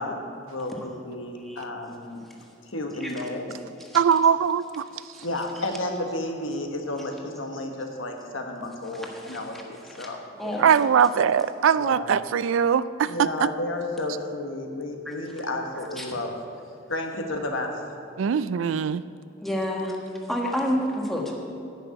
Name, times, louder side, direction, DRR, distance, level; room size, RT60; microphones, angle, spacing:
voice 1, 0.0-2.3 2.7-3.6 5.2-10.7 11.7-12.1 13.0-16.4 16.9-17.7, left 2 dB, 75° left, 3 dB, 1.4 m, -32 dB
voice 2, 3.9-4.8 10.6-13.5 18.2-19.0, right 7 dB, 75° right, 16 dB, 0.4 m, -21 dB
voice 3, 8.9-10.1 10.4-10.8 15.0-15.1 16.0-16.1 19.4-20.0 20.3-21.3, equal, ahead, -1 dB, 1.4 m, -30 dB
10.5 x 6.7 x 8.6 m, 2.8 s
head